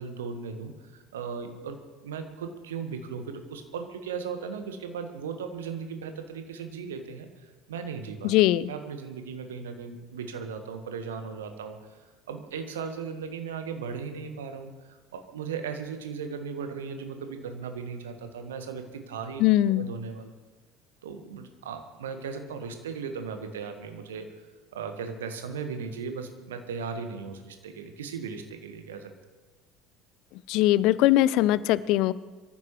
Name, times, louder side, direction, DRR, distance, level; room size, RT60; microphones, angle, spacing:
voice 1, 0.0-8.3 8.7-12.0 12.3-19.4 19.8-20.3 21.0-24.3 24.7-29.1, right 6 dB, 70° right, 7 dB, 1.5 m, -37 dB
voice 2, 8.2-8.7 19.4-19.9 30.5-32.1, left 15 dB, 55° left, 19 dB, 0.4 m, -21 dB
23.5 x 14.0 x 3.2 m, 1.3 s
figure-of-eight pair, 65°, 0 cm